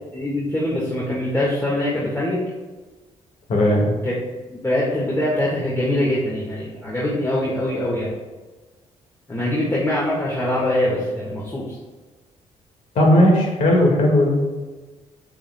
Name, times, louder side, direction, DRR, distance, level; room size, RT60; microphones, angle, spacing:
voice 1, 0.1-2.4 4.0-4.1 4.5-8.1 9.3-11.8, left 1 dB, 20° left, -6 dB, 1.8 m, -23 dB
voice 2, 3.5-3.9 13.0-14.5, left 1 dB, 70° left, 0 dB, 2.0 m, -16 dB
7.4 x 7.0 x 2.3 m, 1.3 s
supercardioid pair, 70°, 13 cm